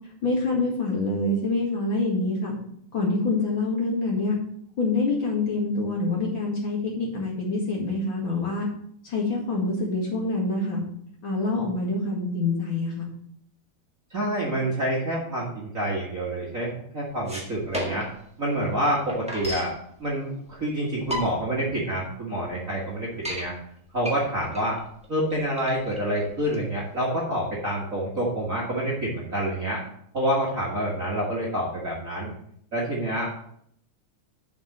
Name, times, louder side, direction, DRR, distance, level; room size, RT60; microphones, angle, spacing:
voice 1, 0.2-2.5 2.9-4.4 4.8-8.7 9.0-10.8 11.2-13.1, left 3 dB, 45° left, -3 dB, 2.5 m, -26 dB
voice 2, 14.1-18.1 18.4-19.7 20.0-23.5 23.9-24.8 25.1-29.8 30.1-32.3 32.7-33.3, right 1 dB, 35° right, -4 dB, 1.6 m, -27 dB
sound 1, 17.1-18.2 18.6-18.7 18.8-19.8 20.5-20.6 20.9-21.6 22.1-22.2 22.4-22.5 22.9-23.5 24.0-26.9, equal, 5° right, 0.6 m, -33 dB
7.3 x 5.0 x 7.2 m, 0.68 s
omnidirectional pair, 3.4 m